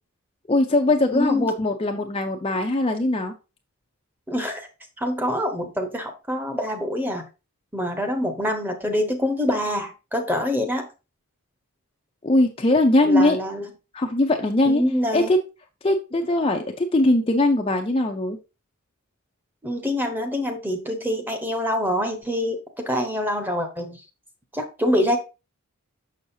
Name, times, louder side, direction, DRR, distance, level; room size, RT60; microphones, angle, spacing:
voice 1, 0.5-3.3 12.2-13.4 13.9-14.8 15.1-15.4 15.8-18.4, left 2 dB, 25° left, 3 dB, 0.5 m, -20 dB
voice 2, 1.1-1.5 4.3-4.7 5.0-7.2 7.7-10.9 13.0-13.7 14.7-15.3 19.6-22.6 22.8-24.0 24.5-25.2, left 1 dB, 10° right, 5 dB, 0.9 m, -25 dB
6.3 x 6.2 x 2.7 m, 0.29 s
head